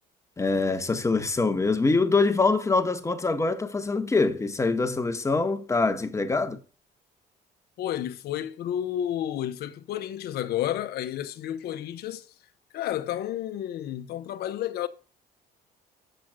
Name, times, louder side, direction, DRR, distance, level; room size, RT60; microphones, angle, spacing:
voice 1, 0.4-6.6, left 3 dB, 15° left, 1.1 m, -24 dB
voice 2, 7.8-12.2 12.7-14.9, left 11 dB, 70° left, 0.8 m, -31 dB
7.7 x 6.0 x 6.2 m
cardioid pair, 110°, 17 cm